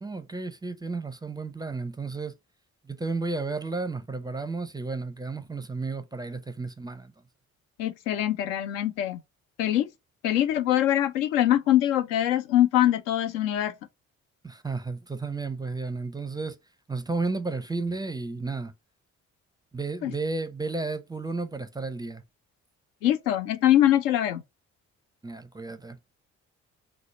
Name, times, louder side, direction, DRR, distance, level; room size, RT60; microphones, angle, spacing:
voice 1, 0.0-2.3 2.8-7.1 14.4-16.6 16.9-18.7 19.7-22.2 25.2-26.0, right 3 dB, 10° right, 0.4 m, -32 dB
voice 2, 7.8-9.2 9.6-9.9 10.2-13.7 20.0-20.1 23.0-24.4, left 12 dB, 75° left, 0.5 m, -23 dB
4.5 x 2.0 x 3.0 m
figure-of-eight pair, 40°, 40 cm